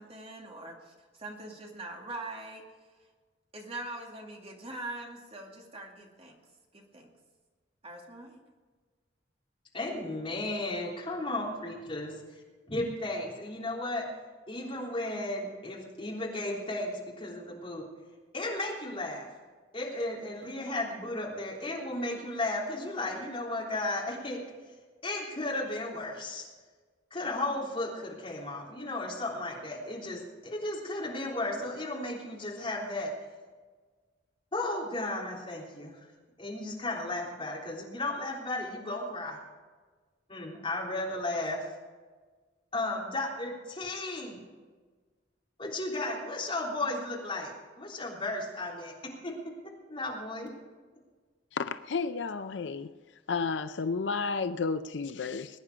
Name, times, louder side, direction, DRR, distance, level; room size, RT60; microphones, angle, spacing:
voice 1, 0.0-2.6 3.5-6.4 6.7-7.1 7.8-8.4, right 2 dB, 30° right, 0 dB, 2.3 m, -42 dB
voice 2, 9.7-12.2 12.7-14.1 14.5-17.9 18.3-19.3 19.7-24.4 25.0-26.5 27.1-33.1 34.5-36.0 36.4-39.4 40.3-41.6 42.7-44.4 45.6-47.5 47.8-48.9 49.2-49.3 49.9-50.5, left 2 dB, 30° left, -3 dB, 3.5 m, -34 dB
voice 3, 51.5-52.9 53.3-55.6, left 4 dB, 70° left, 11 dB, 0.5 m, -32 dB
20.5 x 10.0 x 5.0 m, 1.4 s
head